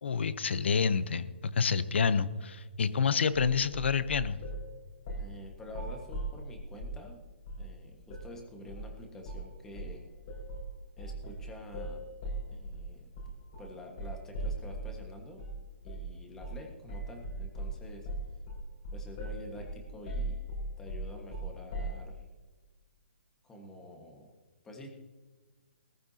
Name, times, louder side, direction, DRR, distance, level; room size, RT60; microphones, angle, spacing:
voice 1, 0.0-4.4, left 6 dB, 75° left, 15 dB, 0.8 m, -28 dB
voice 2, 2.8-3.1 5.1-7.2 7.6-10.0 11.0-12.1 12.5-13.1 13.6-15.4 15.8-18.1 18.9-20.4 20.8-22.2 23.4-24.3 24.6-24.9, left 1 dB, 10° left, 2 dB, 1.5 m, -48 dB
sound 1, 3.7-4.6 5.1-5.3 5.7-7.0 7.5-7.7 8.1-8.3 8.7-8.9 9.2-9.5 9.8-15.0 15.4-15.6 15.9-16.1 16.4-16.6 16.9-22.0, right 2 dB, 40° left, 4.8 m, -38 dB
19.0 x 14.5 x 2.8 m, 1.3 s
hypercardioid pair, 165°, 6 cm